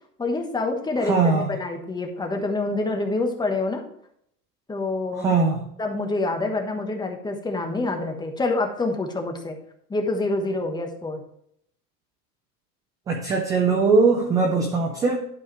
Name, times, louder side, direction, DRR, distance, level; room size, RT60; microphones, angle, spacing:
voice 1, 0.2-3.8 4.7-5.3 5.8-9.6 9.9-11.2, left 2 dB, 10° left, 3 dB, 1.2 m, -26 dB
voice 2, 1.0-1.5 5.1-5.7 13.1-15.3, right 4 dB, 10° right, 1 dB, 0.3 m, -21 dB
11.5 x 4.8 x 4.6 m, 0.70 s
hypercardioid pair, 130°, 48 cm